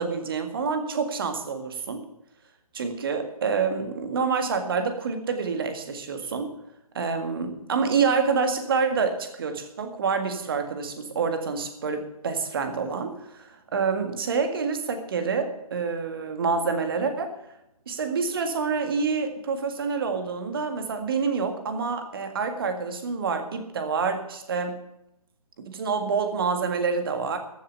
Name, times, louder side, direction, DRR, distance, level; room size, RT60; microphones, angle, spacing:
voice 1, 0.0-2.1 2.7-6.5 6.9-17.4 17.8-24.8 25.6-27.4, right 5 dB, 40° right, 7 dB, 1.9 m, -27 dB
14.0 x 7.1 x 8.1 m, 0.82 s
figure-of-eight pair, 140°, 19 cm